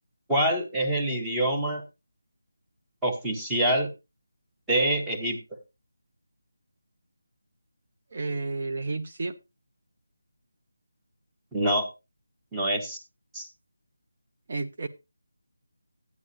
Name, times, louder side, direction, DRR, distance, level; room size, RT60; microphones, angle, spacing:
voice 1, 0.3-1.8 3.0-3.9 4.7-5.4 11.5-11.9 12.5-13.0 13.3-13.5, right 1 dB, 5° right, 1.1 m, -25 dB
voice 2, 8.1-9.3 14.5-14.9, right 3 dB, 45° right, 0.7 m, -31 dB
12.5 x 9.5 x 2.6 m
figure-of-eight pair, 170°, 0 cm